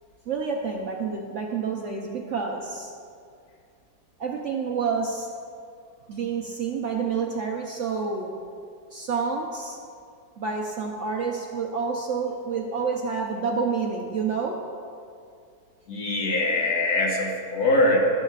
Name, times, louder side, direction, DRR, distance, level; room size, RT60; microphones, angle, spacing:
voice 1, 0.3-2.9 4.2-5.3 6.1-8.4 8.9-9.8 10.4-14.6, right 5 dB, 55° right, 1 dB, 0.9 m, -28 dB
voice 2, 15.9-18.0, left 2 dB, 65° left, -2 dB, 2.0 m, -23 dB
13.5 x 11.5 x 2.4 m, 2.3 s
omnidirectional pair, 1.8 m